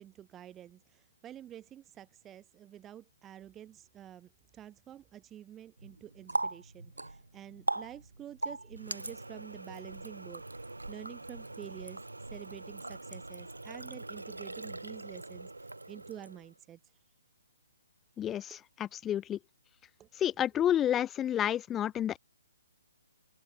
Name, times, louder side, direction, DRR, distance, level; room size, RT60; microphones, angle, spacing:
voice 1, 0.0-17.0 18.5-18.6 20.0-20.1, right 11 dB, 15° right, 2.5 m, -49 dB
Water tap faucet, 5.8-16.6, right 2 dB, 90° right, 1.2 m, -41 dB
voice 2, 18.2-19.4 20.2-22.2, left 10 dB, 15° left, 0.3 m, -30 dB
figure-of-eight pair, 140°, 0 cm